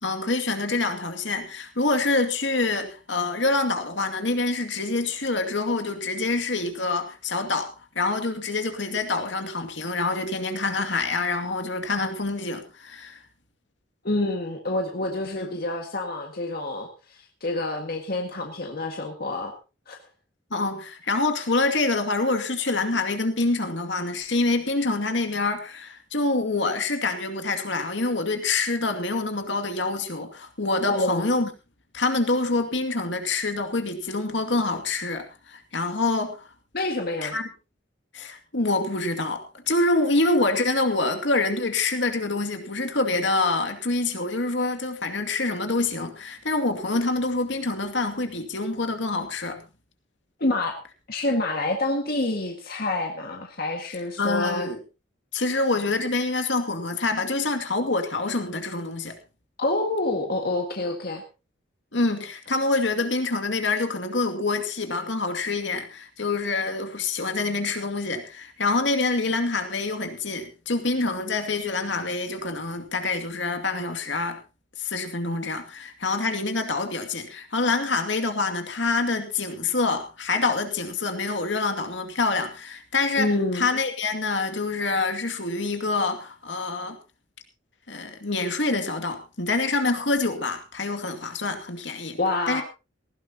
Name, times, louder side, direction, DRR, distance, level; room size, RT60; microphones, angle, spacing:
voice 1, 0.0-7.7 8.0-13.2 15.4-15.6 20.5-31.5 31.9-36.5 37.2-37.5 38.1-49.6 54.2-54.8 55.3-59.2 61.9-74.4 74.8-83.3 83.5-87.0 87.9-92.2 92.5-92.6, left 3 dB, 70° left, 6 dB, 2.3 m, -26 dB
voice 2, 14.0-19.5 19.9-20.0 30.9-31.3 36.7-37.4 50.4-50.8 51.1-54.7 59.6-61.2 83.2-83.7 92.2-92.6, left 2 dB, 55° left, 3 dB, 1.8 m, -27 dB
18.5 x 16.0 x 2.9 m, 0.30 s
head